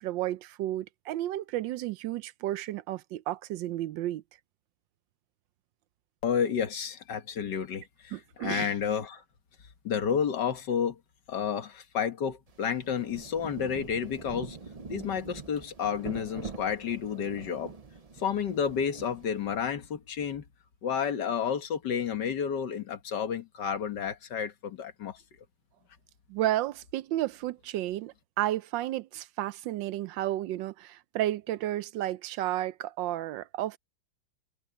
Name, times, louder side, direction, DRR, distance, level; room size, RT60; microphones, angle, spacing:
voice 1, 0.0-4.2 8.1-8.7 26.3-33.8, right 14 dB, 85° right, 1.3 m, -32 dB
voice 2, 6.2-9.2 9.8-11.0 11.3-14.6 14.9-17.7 18.2-20.4 20.8-25.2, left 7 dB, 70° left, 2.0 m, -31 dB
Rain, 12.5-19.7, right 4 dB, 55° right, 0.4 m, -44 dB
omnidirectional pair, 2.0 m